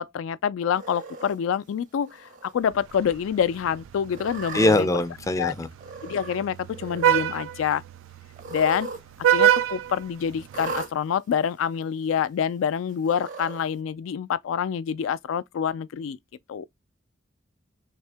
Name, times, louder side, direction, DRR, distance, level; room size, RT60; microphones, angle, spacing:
voice 1, 0.0-4.9 5.4-5.5 6.0-7.8 8.5-8.9 9.3-16.2 16.5-16.7, left 8 dB, 90° left, 0.3 m, -27 dB
Cat, 0.7-1.3 2.1-2.5 2.9-3.0 4.1-4.8 5.8-6.5 6.7-7.3 8.3-9.0 9.3-9.4 10.5-10.9 11.8-11.9 13.0-13.6, right 4 dB, 40° right, 0.7 m, -37 dB
Vehicle horn car horn honking, 2.7-10.8, right 10 dB, 85° right, 0.3 m, -28 dB
voice 2, 4.5-5.7, left 1 dB, 15° left, 0.4 m, -22 dB
3.5 x 2.8 x 3.3 m
head